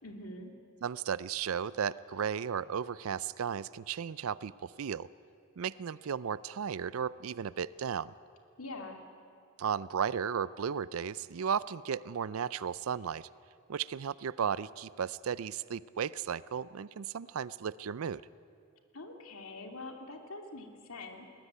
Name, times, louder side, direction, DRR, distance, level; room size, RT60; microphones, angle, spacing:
voice 1, 0.0-0.5 8.6-9.0 18.9-21.3, left 2 dB, 75° left, 4 dB, 2.5 m, -44 dB
voice 2, 0.8-5.1 5.6-8.1 9.6-13.3 13.7-18.2, right 7 dB, 75° right, 18 dB, 0.4 m, -35 dB
21.0 x 18.5 x 9.5 m, 2.4 s
head